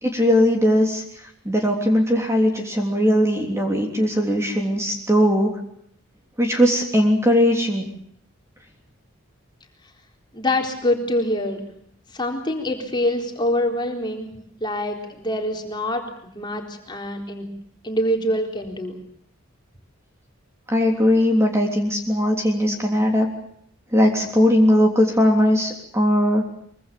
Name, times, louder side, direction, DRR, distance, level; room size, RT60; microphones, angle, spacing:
voice 1, 0.0-1.0 1.4-5.5 6.4-7.8 20.7-23.3 23.9-26.4, equal, 15° right, 2 dB, 3.4 m, -19 dB
voice 2, 10.3-11.6 12.1-14.3 14.6-16.0 16.3-17.5 17.8-19.0, left 1 dB, 20° left, 2 dB, 4.0 m, -25 dB
24.0 x 24.0 x 6.9 m, 0.67 s
head